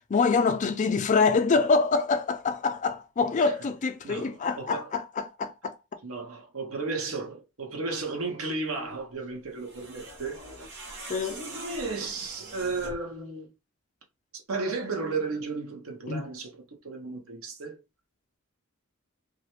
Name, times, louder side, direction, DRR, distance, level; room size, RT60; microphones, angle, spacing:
voice 1, 0.1-5.8 11.1-11.4 16.1-16.2, left 4 dB, 35° left, 0.3 m, -25 dB
voice 2, 4.0-4.9 6.0-10.4 11.2-13.5 14.5-16.5 16.8-17.8, right 3 dB, 70° right, 0.7 m, -34 dB
sound 1, 9.5-13.1, right 2 dB, 55° right, 1.1 m, -43 dB
2.4 x 2.1 x 2.8 m
head